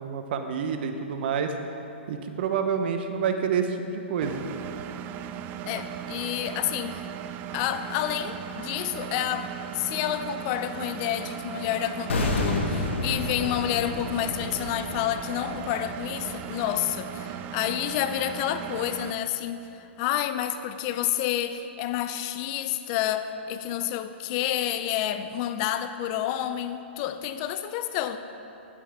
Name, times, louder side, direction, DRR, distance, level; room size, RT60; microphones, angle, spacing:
voice 1, 0.0-1.6 2.1-4.4, right 6 dB, 55° right, 7 dB, 1.0 m, -28 dB
Engine, 4.2-19.1, right 9 dB, 30° right, 0.4 m, -37 dB
voice 2, 5.7-7.0 7.5-9.5 9.7-28.2, left 11 dB, 40° left, 11 dB, 0.5 m, -29 dB
sound 1, 12.1-17.1 17.4-17.5, left 2 dB, 80° left, 1.5 m, -31 dB
16.0 x 8.5 x 3.6 m, 2.8 s
hypercardioid pair, 130°, 6 cm